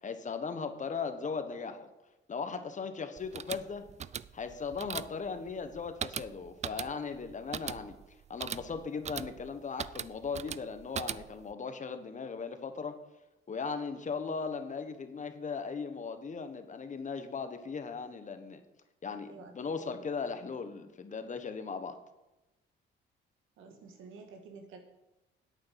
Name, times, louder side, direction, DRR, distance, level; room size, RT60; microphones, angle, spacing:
voice 1, 0.0-1.9 2.3-3.8 4.3-8.0 8.3-13.0 13.5-18.6 19.0-22.0, left 5 dB, 40° left, 9 dB, 1.2 m, -38 dB
sound 1, 3.2-11.5, right 8 dB, 35° right, 0.4 m, -41 dB
voice 2, 19.3-20.0 23.6-24.8, right 4 dB, 85° right, 4 dB, 1.8 m, -51 dB
8.6 x 8.6 x 5.8 m, 1.0 s
cardioid pair, 90°, 20 cm